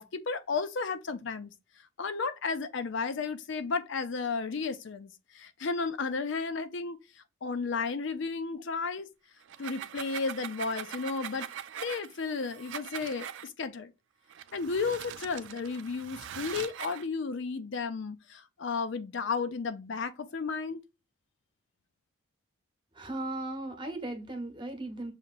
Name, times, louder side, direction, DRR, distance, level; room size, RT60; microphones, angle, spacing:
voice 1, 0.0-1.5 2.0-7.0 7.4-9.1 9.6-11.5 11.7-13.9 14.5-20.8, left 4 dB, 60° left, 0.4 m, -33 dB
sound 1, 9.4-13.5 14.3-17.1, right 9 dB, 60° right, 0.4 m, -42 dB
voice 2, 22.9-25.1, right 2 dB, 20° right, 1.0 m, -37 dB
6.6 x 2.8 x 2.4 m
head